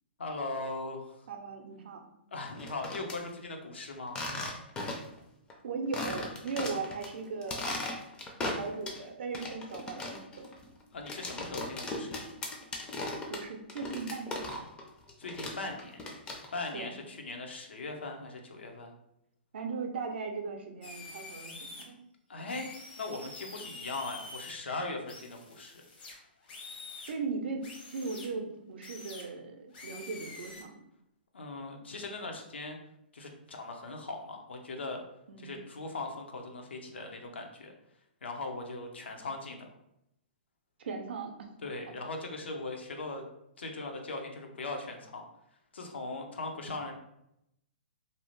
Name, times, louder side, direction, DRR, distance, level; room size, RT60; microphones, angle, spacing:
voice 1, 0.2-1.2 2.3-4.3 10.9-12.3 15.2-15.9 16.5-18.9 22.3-22.7 23.0-25.8 31.3-32.8 33.1-35.0 35.4-37.7 38.2-39.7 41.6-43.2 43.6-45.2 45.7-46.9, left 2 dB, 90° left, 3 dB, 0.6 m, -39 dB
voice 2, 1.3-2.0 5.6-7.7 8.4-10.5 13.3-14.6 16.7-17.0 19.5-22.0 27.1-30.7 35.3-35.6 40.8-41.5, right 4 dB, 70° right, 4 dB, 0.5 m, -38 dB
sound 1, 2.5-3.2 4.1-5.2 5.5-5.6 5.9-7.1 7.4-9.0 9.3-14.8 15.1-16.7, left 2 dB, 15° left, 0.4 m, -37 dB
sound 2, 20.8-21.8 22.5-24.5 25.1-27.1 27.6-28.3 28.8-29.2 29.7-30.6, left 3 dB, 60° left, 0.7 m, -46 dB
2.7 x 2.0 x 3.0 m, 0.81 s
hypercardioid pair, 140°, 6 cm